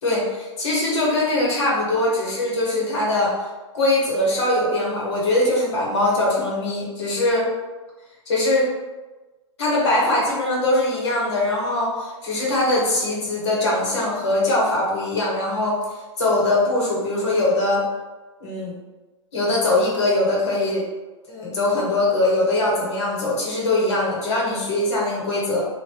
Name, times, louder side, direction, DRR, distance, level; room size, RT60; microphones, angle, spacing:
voice 1, 0.0-3.3 3.7-7.5 8.3-8.6 9.6-17.8 18.4-18.7 19.3-20.8 21.3-25.6, left 2 dB, 60° left, -4 dB, 1.4 m, -22 dB
3.0 x 2.5 x 3.0 m, 1.2 s
figure-of-eight pair, 110°, 16 cm